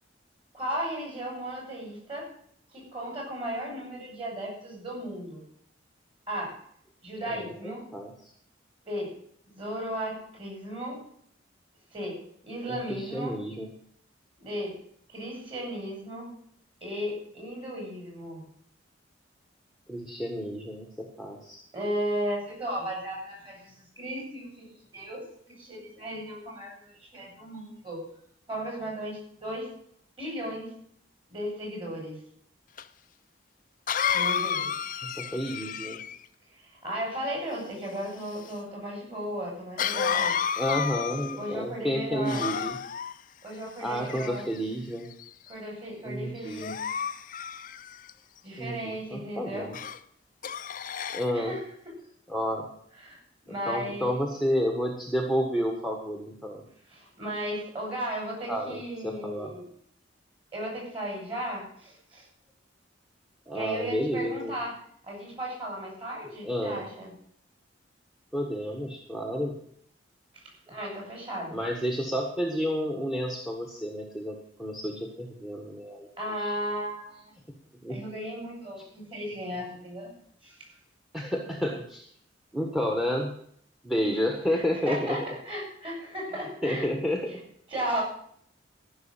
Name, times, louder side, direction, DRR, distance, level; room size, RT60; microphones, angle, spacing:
voice 1, 0.5-2.3 2.7-5.4 6.3-6.6 7.0-7.8 8.8-9.1 9.5-11.0 11.9-12.2 12.4-13.4 14.4-14.7 15.1-16.3 16.8-18.4 21.7-25.2 25.5-28.0 28.5-29.7 30.2-30.7 31.3-32.2 34.1-34.8 36.5-40.3 41.4-42.4 43.4-44.4 45.5-46.8 48.4-49.7 51.3-51.6 53.0-53.2 53.5-54.2 56.9-59.7 60.5-62.2 63.5-64.7 65.0-67.1 70.3-71.6 76.2-77.3 77.9-80.1 80.4-80.6 84.0-84.2 84.5-86.9 87.7-88.0, equal, 30° right, -2 dB, 6.7 m, -35 dB
voice 2, 7.3-8.3 12.7-13.7 19.9-21.6 35.0-36.0 40.6-42.8 43.8-45.1 46.0-46.7 48.6-49.8 51.1-51.5 52.3-52.6 53.6-56.6 58.5-59.5 63.5-64.6 66.4-66.8 68.3-69.6 71.5-76.1 76.4-76.5 77.8-78.0 81.1-82.1 82.5-83.3 83.8-85.2 86.6-87.3, equal, ahead, 2 dB, 1.5 m, -30 dB
Cough, 32.8-32.9 33.9-36.2 39.8-41.5 42.2-43.1 43.9-44.6 45.2-45.5 46.5-48.1 49.7-50.0 50.4-51.3, left 7 dB, 45° left, 0.6 m, -31 dB
14.5 x 6.4 x 8.8 m, 0.65 s
head